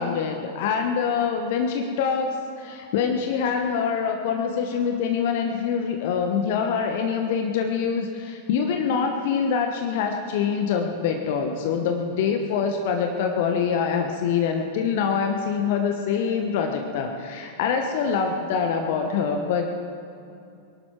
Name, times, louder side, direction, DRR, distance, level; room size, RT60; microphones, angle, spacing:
voice 1, 0.0-19.7, left 6 dB, 50° left, 4 dB, 1.2 m, -25 dB
22.5 x 12.0 x 4.6 m, 2.6 s
figure-of-eight pair, 90°, 0 cm